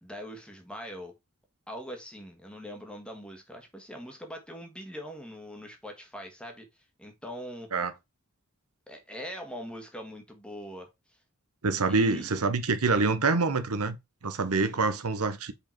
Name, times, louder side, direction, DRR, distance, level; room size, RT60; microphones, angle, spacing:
voice 1, 0.0-1.1 1.7-6.7 7.0-7.7 8.9-10.9 11.8-12.3, equal, 5° left, 1.5 m, -42 dB
voice 2, 11.6-14.0 14.2-15.5, right 3 dB, 85° right, 0.9 m, -26 dB
5.0 x 4.9 x 4.4 m
head